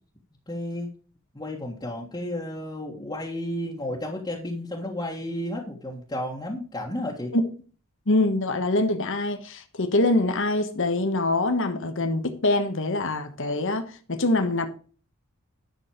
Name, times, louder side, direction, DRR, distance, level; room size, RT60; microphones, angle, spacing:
voice 1, 0.5-0.9 1.3-7.3, left 1 dB, 20° left, 1.7 m, -32 dB
voice 2, 8.1-14.7, left 2 dB, 60° left, 1.3 m, -24 dB
10.5 x 6.4 x 4.9 m
head